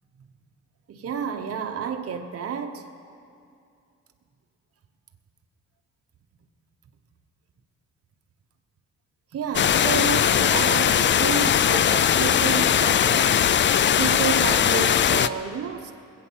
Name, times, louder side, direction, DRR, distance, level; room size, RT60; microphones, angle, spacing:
voice 1, 0.9-2.8 9.3-13.4 14.0-15.9, right 6 dB, 50° right, 1.0 m, -30 dB
sound 1, 9.5-15.3, left 9 dB, 40° left, 0.5 m, -20 dB
20.0 x 8.5 x 7.4 m
cardioid pair, 90°, 30 cm